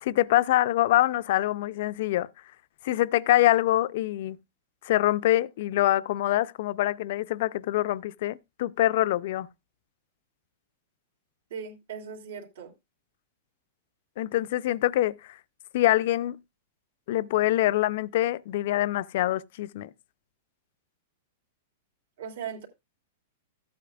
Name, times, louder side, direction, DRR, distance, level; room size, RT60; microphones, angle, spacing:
voice 1, 0.0-2.3 2.8-4.4 4.8-9.5 14.2-15.4 15.7-16.4 17.1-19.9, left 15 dB, 55° left, 0.4 m, -25 dB
voice 2, 11.5-12.7 22.2-22.7, right 7 dB, 75° right, 2.7 m, -38 dB
14.0 x 8.5 x 2.3 m
supercardioid pair, 165°, 0 cm